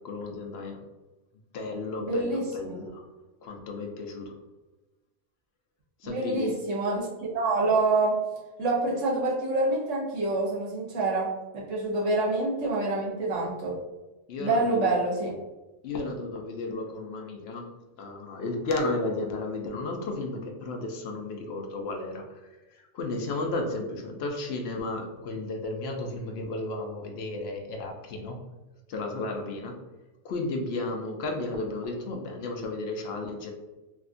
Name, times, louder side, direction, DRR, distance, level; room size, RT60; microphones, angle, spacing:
voice 1, 0.0-0.8 1.5-3.0 3.4-4.4 6.0-6.6 14.3-14.9 15.8-17.7 18.0-22.2 22.7-28.4 28.9-29.8 30.2-33.5, left 2 dB, 65° left, 2 dB, 0.7 m, -33 dB
voice 2, 2.0-2.7 6.0-8.2 8.6-13.8 14.4-15.3, right 2 dB, 90° right, -5 dB, 1.1 m, -27 dB
3.4 x 2.3 x 2.5 m, 1.1 s
omnidirectional pair, 1.2 m